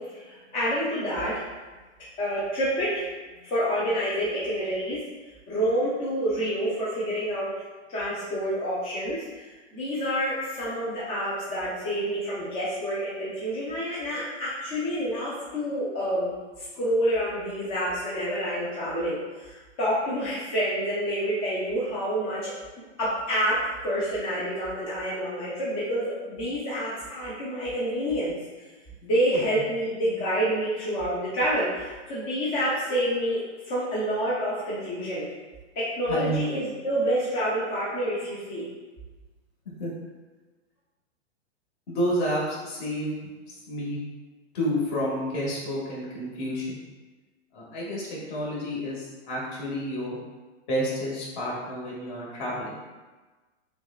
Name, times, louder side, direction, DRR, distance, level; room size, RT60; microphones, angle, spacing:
voice 1, 0.0-1.4 2.2-3.0 3.4-5.0 5.5-7.5 7.9-9.5 9.7-22.5 23.0-28.4 29.0-35.3 35.8-38.7, equal, 20° left, -9 dB, 0.5 m, -28 dB
voice 2, 36.1-36.4 39.8-39.9 41.9-43.2 43.5-44.0 44.5-46.8 47.5-50.2 50.7-52.7, equal, 40° left, -5 dB, 1.4 m, -30 dB
6.1 x 2.3 x 2.3 m, 1.3 s
hypercardioid pair, 155°, 36 cm